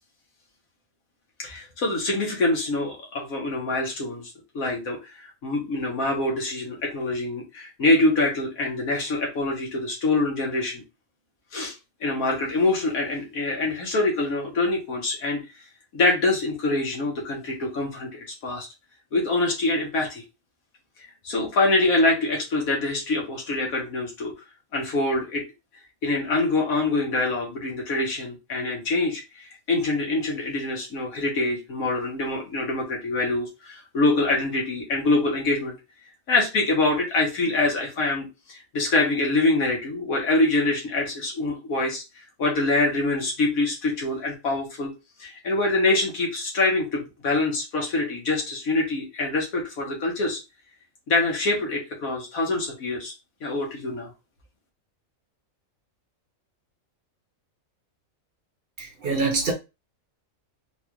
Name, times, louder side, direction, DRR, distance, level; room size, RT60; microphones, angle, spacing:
voice 1, 1.4-10.8 11.5-11.7 12.0-15.4 15.9-18.7 19.1-20.2 21.2-24.3 24.7-25.4 26.0-35.7 36.3-44.9 45.2-50.4 51.1-53.1 53.4-54.1, left 2 dB, 85° left, 1.7 m, -25 dB
voice 2, 58.8-59.5, right 3 dB, 50° right, 0.8 m, -25 dB
4.0 x 2.4 x 2.9 m
omnidirectional pair, 1.4 m